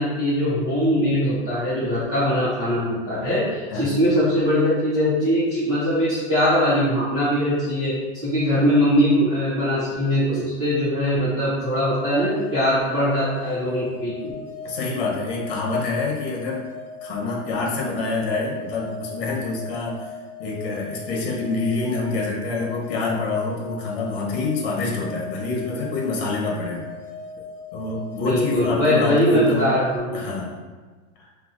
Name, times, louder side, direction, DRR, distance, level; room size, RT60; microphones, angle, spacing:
voice 1, 0.0-14.3 28.2-30.2, equal, 15° right, -13 dB, 0.8 m, -21 dB
sound 1, 11.6-30.0, left 4 dB, 5° left, 1.2 m, -38 dB
voice 2, 14.6-16.7 17.0-26.8 27.7-29.7 30.1-30.6 31.2-31.3, left 3 dB, 45° left, -2 dB, 1.2 m, -27 dB
5.7 x 2.8 x 2.6 m, 1.3 s
supercardioid pair, 175°, 37 cm